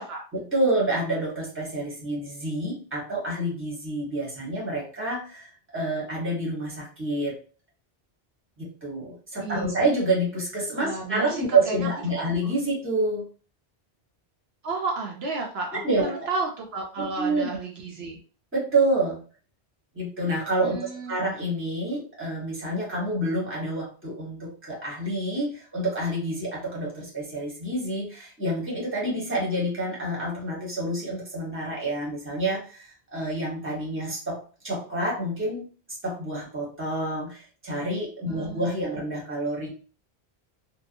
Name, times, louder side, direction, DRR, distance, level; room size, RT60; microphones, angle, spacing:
voice 1, 0.3-7.4 8.6-13.3 15.8-16.3 17.0-17.5 18.5-19.2 19.9-34.4 34.6-35.6 36.0-39.7, right 1 dB, 10° right, -4 dB, 1.0 m, -28 dB
voice 2, 9.4-9.7 10.8-11.9 14.6-18.2 20.6-21.2 38.2-38.7, right 3 dB, 70° right, -1 dB, 0.8 m, -32 dB
2.7 x 2.2 x 2.5 m, 0.39 s
omnidirectional pair, 1.1 m